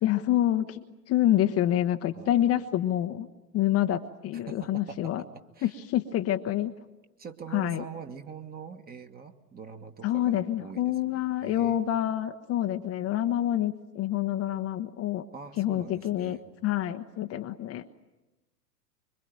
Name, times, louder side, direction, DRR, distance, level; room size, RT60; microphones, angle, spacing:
voice 1, 0.0-3.3 3.5-5.2 5.6-6.7 7.5-7.8 10.0-15.3 15.6-17.9, left 12 dB, 30° left, 6 dB, 1.1 m, -27 dB
voice 2, 2.1-2.5 4.5-5.3 5.6-5.7 7.2-10.9 11.4-11.9 15.3-16.5, right 6 dB, 20° right, 6 dB, 1.8 m, -43 dB
25.5 x 24.0 x 9.1 m, 1.0 s
hypercardioid pair, 100°, 49 cm